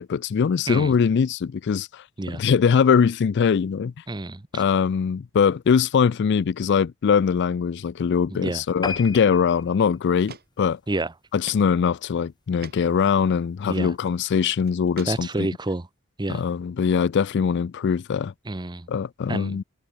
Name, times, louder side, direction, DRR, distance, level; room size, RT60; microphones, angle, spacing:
voice 1, 0.0-2.0 2.3-3.9 4.5-10.8 11.3-15.5 16.3-18.3 18.9-19.6, left 6 dB, 50° left, 0.4 m, -22 dB
voice 2, 4.1-4.6 8.3-8.6 10.9-11.1 13.7-13.9 15.1-15.9 16.2-16.4 18.5-18.9 19.3-19.6, right 2 dB, 20° right, 0.7 m, -29 dB
sound 1, 8.8-11.6 12.0-12.2 12.7-12.8 13.1-13.2 13.4-13.5, left 3 dB, 20° left, 2.7 m, -36 dB
sound 2, 9.6-9.7 10.3-10.5 10.8-10.9 11.5-11.7 12.0-12.1 12.6-12.8 13.9-14.1 14.6-15.5, right 3 dB, 45° right, 3.0 m, -41 dB
head